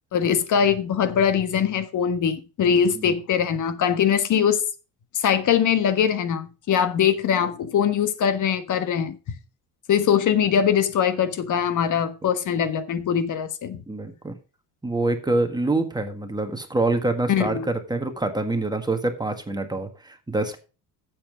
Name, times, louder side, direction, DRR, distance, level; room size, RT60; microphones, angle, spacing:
voice 1, 0.1-4.6 5.1-9.4 9.9-13.8 17.3-17.7, left 8 dB, 45° left, 1.4 m, -22 dB
voice 2, 13.9-14.4 14.8-20.6, right 2 dB, 10° right, 1.6 m, -26 dB
8.7 x 7.7 x 5.1 m
cardioid pair, 110°, 41 cm